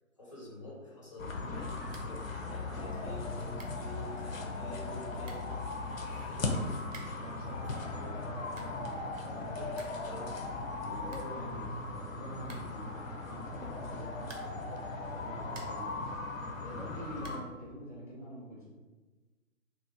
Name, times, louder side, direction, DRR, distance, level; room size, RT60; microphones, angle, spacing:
voice 1, 0.2-5.5 6.0-7.0 7.6-7.8 10.0-10.4, left 1 dB, 25° left, -5 dB, 0.5 m, -48 dB
sound 1, 1.2-17.4, left 3 dB, 75° left, 0.7 m, -38 dB
sound 2, 1.9-2.3 2.5-2.6 3.2-3.3 3.5-3.9 4.8-4.9 5.2-5.6 6.8-7.3 8.3-8.9 9.2-9.3 9.5-10.1 10.4-10.5 10.7-10.8 11.1-11.9 12.4-12.9 14.2-14.7 15.2-15.9 17.2-17.6, right 3 dB, 65° right, 0.7 m, -52 dB
voice 2, 7.1-10.2 10.8-16.2 16.6-18.7, equal, 30° right, -7 dB, 0.4 m, -46 dB
2.8 x 2.2 x 3.6 m, 1.3 s
figure-of-eight pair, 140°, 41 cm